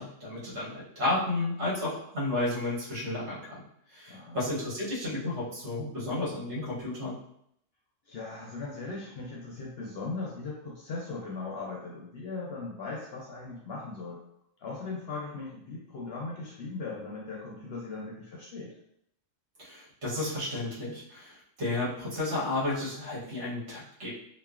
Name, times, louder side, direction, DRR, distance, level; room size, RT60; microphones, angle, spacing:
voice 1, 0.0-3.6 3.9-7.2 19.6-24.1, left 2 dB, 60° right, -7 dB, 1.3 m, -32 dB
voice 2, 4.1-4.5 8.1-14.2 14.6-18.7, left 3 dB, 60° left, -3 dB, 0.7 m, -38 dB
3.0 x 2.1 x 2.4 m, 0.72 s
omnidirectional pair, 1.4 m